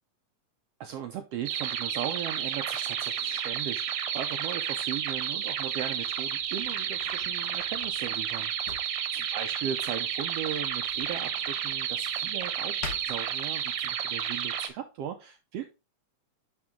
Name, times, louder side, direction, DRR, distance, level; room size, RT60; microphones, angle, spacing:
voice 1, 0.8-8.5 9.1-12.7 13.0-15.7, right 9 dB, 85° right, 6 dB, 1.3 m, -37 dB
sound 1, 1.5-14.7, right 9 dB, 70° right, 1.8 m, -31 dB
Drawer open or close, 5.2-13.9, left 4 dB, 55° left, 1.2 m, -48 dB
10.5 x 3.7 x 3.7 m, 0.27 s
omnidirectional pair, 3.6 m